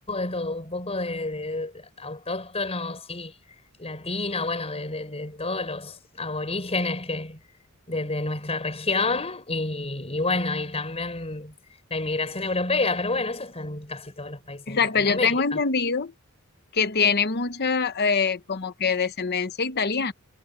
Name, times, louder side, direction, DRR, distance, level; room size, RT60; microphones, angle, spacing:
voice 1, 0.1-3.3 3.8-7.4 7.9-11.5 11.9-15.6, left 3 dB, 30° left, 5.4 m, -29 dB
voice 2, 14.7-16.1 16.7-20.1, left 5 dB, 50° left, 1.0 m, -24 dB
head